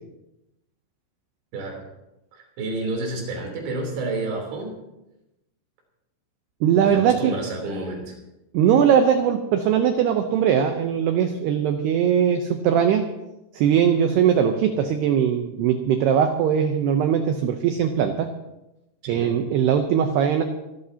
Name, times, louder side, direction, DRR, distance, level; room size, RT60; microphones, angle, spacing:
voice 1, 2.3-4.8 6.8-8.1 19.0-19.4, right 2 dB, 65° right, 1 dB, 5.6 m, -30 dB
voice 2, 6.6-7.3 8.5-13.1 13.5-18.3 19.1-20.4, right 8 dB, 85° right, 6 dB, 2.3 m, -20 dB
30.0 x 13.0 x 2.9 m, 0.94 s
omnidirectional pair, 5.8 m